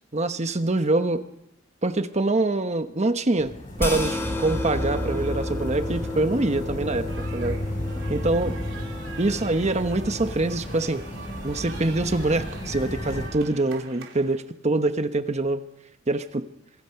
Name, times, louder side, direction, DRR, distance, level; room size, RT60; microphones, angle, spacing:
voice 1, 0.1-1.2 1.8-3.5 3.8-7.1 7.3-7.6 8.1-8.5 9.2-11.0 11.4-15.6 16.1-16.4, right 2 dB, 35° right, 9 dB, 1.1 m, -24 dB
sound 1, 3.4-13.3, left 1 dB, 40° left, 5.9 m, -34 dB
sound 2, 3.8-10.3, left 1 dB, 10° left, 3.3 m, -32 dB
sound 3, 7.1-14.4, right 5 dB, 80° right, 4.1 m, -44 dB
26.5 x 22.5 x 5.8 m, 0.89 s
head